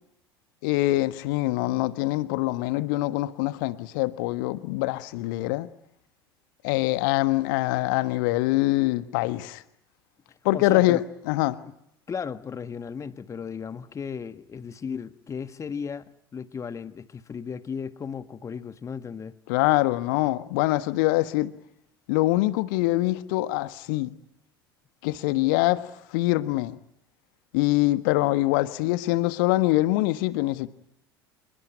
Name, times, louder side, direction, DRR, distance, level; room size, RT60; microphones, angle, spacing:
voice 1, 0.6-5.7 6.6-9.6 10.4-11.0 11.3-11.6 19.5-21.5 22.1-24.1 25.0-25.8 26.1-26.7 27.5-30.7, left 18 dB, 55° left, 1.4 m, -24 dB
voice 2, 10.5-11.0 12.1-19.3, left 6 dB, 25° left, 1.7 m, -35 dB
28.0 x 22.5 x 9.4 m
figure-of-eight pair, 70°, 13 cm